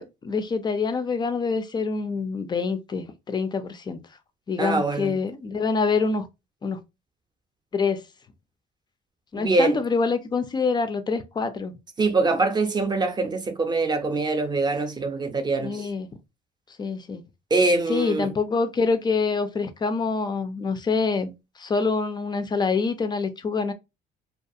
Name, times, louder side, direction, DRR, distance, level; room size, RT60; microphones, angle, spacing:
voice 1, 0.0-4.0 4.5-6.3 6.6-6.8 7.7-8.0 9.3-11.8 15.6-16.1 16.8-17.2 17.9-23.7, left 4 dB, 25° left, 0.3 m, -26 dB
voice 2, 4.6-5.2 9.3-9.8 12.0-15.9 17.5-18.3, right 3 dB, 25° right, 0.5 m, -24 dB
2.3 x 2.3 x 2.6 m
cardioid pair, 110°, 17 cm